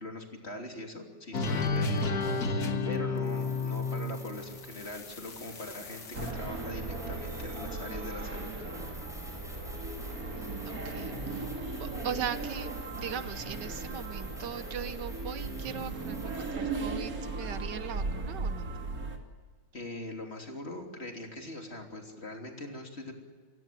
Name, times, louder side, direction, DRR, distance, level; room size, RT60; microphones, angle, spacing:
voice 1, 0.0-8.5 19.7-23.1, left 2 dB, 35° left, 2 dB, 3.4 m, -42 dB
sound 1, 1.3-6.3, left 3 dB, 55° left, 2.1 m, -32 dB
sound 2, 3.2-16.5, left 1 dB, ahead, 5.1 m, -50 dB
sound 3, 6.1-19.2, right 3 dB, 50° right, 3.0 m, -37 dB
voice 2, 10.3-11.5 11.8-18.7, right 8 dB, 70° right, 12 dB, 1.5 m, -39 dB
29.0 x 16.5 x 7.6 m, 1.5 s
omnidirectional pair, 2.0 m